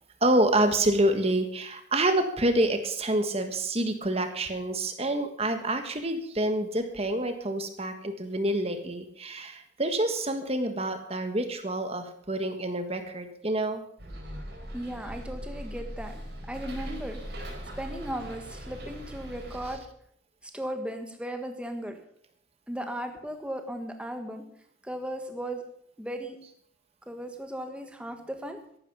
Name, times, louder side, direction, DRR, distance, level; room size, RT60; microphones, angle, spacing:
voice 1, 0.2-13.8, right 1 dB, 30° right, 7 dB, 1.6 m, -27 dB
Bus, 14.0-19.8, equal, 60° right, 4.6 m, -40 dB
voice 2, 14.7-16.2 16.5-17.2 17.8-19.8 20.5-22.0 22.7-24.4 24.8-25.6 26.0-26.4 27.1-28.6, right 1 dB, 5° right, 5 dB, 1.5 m, -36 dB
14.0 x 12.0 x 5.5 m, 0.68 s
head